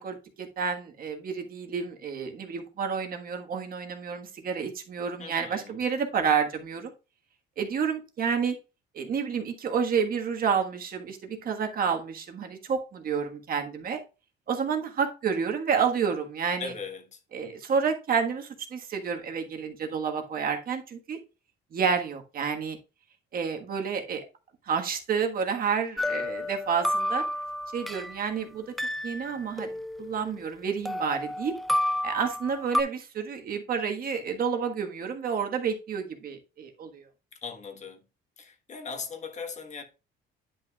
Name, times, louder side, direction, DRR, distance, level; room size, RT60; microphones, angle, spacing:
voice 1, 0.0-6.9 7.6-8.5 8.9-14.0 14.5-16.7 17.3-21.2 21.7-22.8 23.3-24.2 24.7-27.2 27.7-28.7 29.0-29.7 30.0-31.5 32.0-37.0, right 6 dB, 50° right, 1.5 m, -29 dB
voice 2, 5.2-5.7 16.6-17.2 37.4-38.0 38.4-39.8, left 5 dB, 35° left, 1.3 m, -39 dB
sound 1, 26.0-28.2 28.8-30.5 30.9-32.8, left 1 dB, ahead, 0.4 m, -31 dB
10.0 x 6.1 x 2.3 m
cardioid pair, 140°, 20 cm